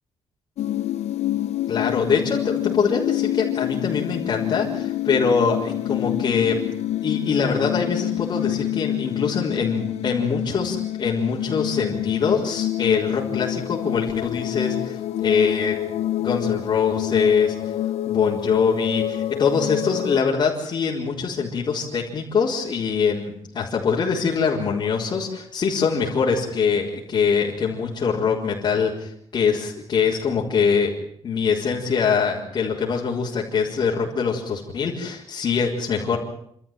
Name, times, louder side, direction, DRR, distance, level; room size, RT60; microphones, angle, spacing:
sound 1, 0.6-20.2, left 13 dB, 80° left, 0.8 m, -27 dB
voice 1, 1.7-6.6 7.0-15.8 16.2-17.5 18.1-30.9 31.2-36.2, left 5 dB, 45° left, -6 dB, 4.3 m, -23 dB
29.5 x 13.5 x 9.2 m, 0.71 s
wide cardioid pair, 165°, 11 cm